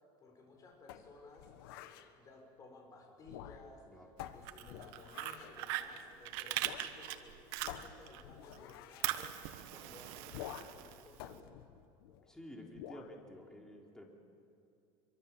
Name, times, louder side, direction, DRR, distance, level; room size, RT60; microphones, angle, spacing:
voice 1, 0.2-3.8 4.3-9.3 9.7-11.4, left 3 dB, 30° left, 1 dB, 6.6 m, -57 dB
sound 1, 0.9-2.1 3.2-3.8 4.2-5.6 6.6-6.9 7.2-7.3 7.7-9.1 10.3-10.8 11.2-12.3 12.8-13.1, left 11 dB, 90° left, 1.4 m, -49 dB
Fire, 4.3-8.2 8.5-11.3, right 14 dB, 75° right, 1.4 m, -40 dB
voice 2, 12.3-14.1, left 1 dB, 5° left, 0 dB, 3.6 m, -51 dB
25.5 x 24.5 x 7.3 m, 2.5 s
cardioid pair, 140°, 12 cm